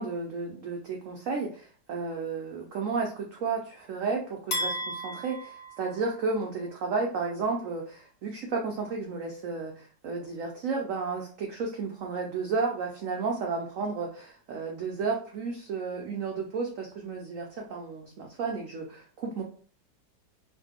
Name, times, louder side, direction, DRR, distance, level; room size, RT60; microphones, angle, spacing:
voice 1, 0.0-19.4, right 4 dB, 75° right, 0 dB, 0.7 m, -32 dB
sound 1, 4.5-6.6, left 1 dB, 60° left, 0.5 m, -35 dB
3.1 x 2.2 x 3.4 m, 0.41 s
omnidirectional pair, 2.0 m